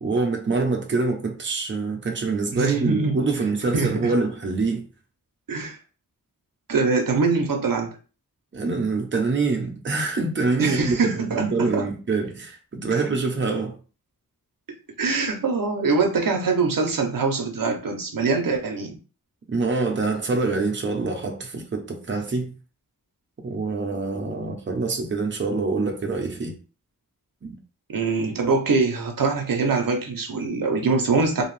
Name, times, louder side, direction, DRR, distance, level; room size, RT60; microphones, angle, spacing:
voice 1, 0.0-4.9 8.5-13.8 19.5-22.5 23.4-26.6 27.4-27.5, right 3 dB, 35° right, 0.6 m, -25 dB
voice 2, 2.5-3.2 3.7-4.1 5.5-5.8 6.7-7.9 10.6-11.9 15.0-19.0 27.9-31.4, right 4 dB, 70° right, 0.7 m, -23 dB
2.6 x 2.3 x 3.2 m
wide cardioid pair, 90°, 34 cm